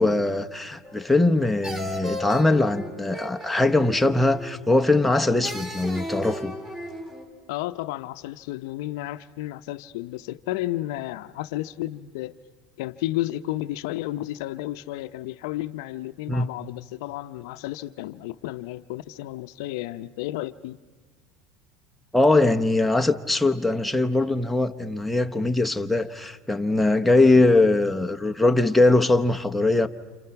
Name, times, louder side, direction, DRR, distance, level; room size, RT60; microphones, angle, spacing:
voice 1, 0.0-6.5 16.3-16.5 22.1-29.9, left 2 dB, 5° left, 1.0 m, -21 dB
sound 1, 0.8-1.3 1.6-4.7 5.4-7.3, left 1 dB, 15° right, 3.6 m, -36 dB
voice 2, 7.5-12.4 12.8-20.8, left 15 dB, 80° left, 0.7 m, -32 dB
30.0 x 28.5 x 5.9 m
supercardioid pair, 120°, 2 cm